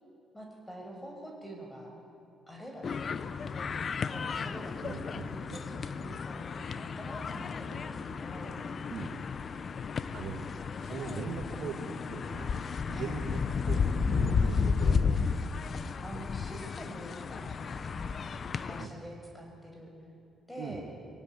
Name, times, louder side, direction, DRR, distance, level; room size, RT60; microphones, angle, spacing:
voice 1, 0.3-1.9 2.5-3.1 4.1-8.6 9.6-9.9 12.9-13.2 16.0-18.2 18.6-19.9 20.5-20.8, equal, 10° left, 1 dB, 6.0 m, -46 dB
sound 1, 2.8-18.9, left 5 dB, 45° left, 0.9 m, -33 dB
voice 2, 4.8-5.6 8.9-9.2 10.1-10.4 10.8-12.5 12.9-15.4 18.7-18.9 20.6-20.8, right 6 dB, 75° right, 0 dB, 1.9 m, -41 dB
22.5 x 17.0 x 9.7 m, 2.7 s
cardioid pair, 90°, 0 cm